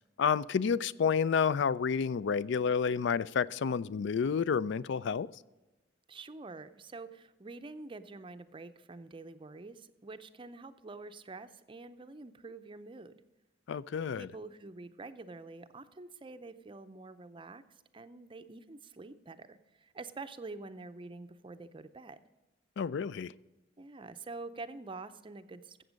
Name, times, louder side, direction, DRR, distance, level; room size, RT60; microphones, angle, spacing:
voice 1, 0.2-5.3 13.7-14.3 22.8-23.3, left 6 dB, 65° left, 20 dB, 0.4 m, -30 dB
voice 2, 6.1-13.1 14.1-17.6 17.9-22.2 23.8-25.8, right 3 dB, 25° right, 10 dB, 0.5 m, -47 dB
14.5 x 7.7 x 5.1 m, 1.1 s
head